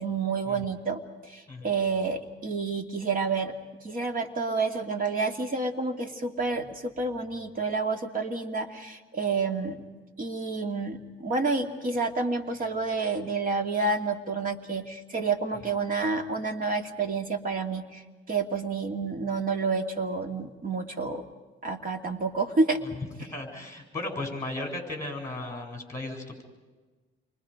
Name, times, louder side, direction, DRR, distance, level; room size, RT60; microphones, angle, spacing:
voice 1, 0.0-3.5 3.8-9.8 10.2-18.0 18.3-21.2 21.6-22.8, right 4 dB, 40° right, 4 dB, 2.5 m, -29 dB
voice 2, 23.2-26.4, left 2 dB, 15° left, 3 dB, 7.2 m, -36 dB
29.0 x 24.5 x 5.1 m, 1.3 s
cardioid pair, 125°, 21 cm